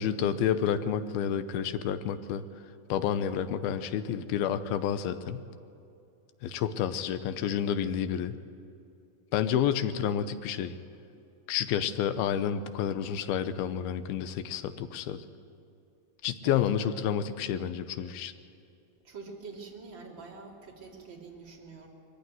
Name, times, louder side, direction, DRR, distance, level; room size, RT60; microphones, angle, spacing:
voice 1, 0.0-2.4 2.9-5.4 6.4-8.4 9.3-10.7 11.5-15.2 16.2-18.3, left 9 dB, 85° left, 11 dB, 2.7 m, -29 dB
voice 2, 16.4-16.9 19.0-21.9, right 4 dB, 35° right, -2 dB, 3.2 m, -45 dB
21.5 x 15.5 x 9.5 m, 2.6 s
omnidirectional pair, 4.4 m